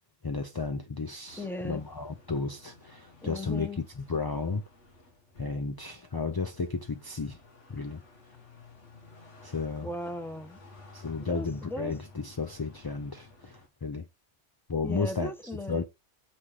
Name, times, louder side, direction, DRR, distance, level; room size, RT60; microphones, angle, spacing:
voice 1, 0.2-4.6 5.4-7.4 7.7-8.0 9.4-9.9 10.9-14.0 14.7-15.3 15.7-15.8, left 4 dB, 30° left, 0.4 m, -33 dB
sound 1, 1.2-13.7, left 3 dB, 85° left, 2.1 m, -54 dB
voice 2, 1.4-1.8 3.2-3.8 9.8-10.6 11.3-11.9 14.8-15.8, left 1 dB, ahead, 0.9 m, -37 dB
8.0 x 3.5 x 4.9 m
omnidirectional pair, 1.2 m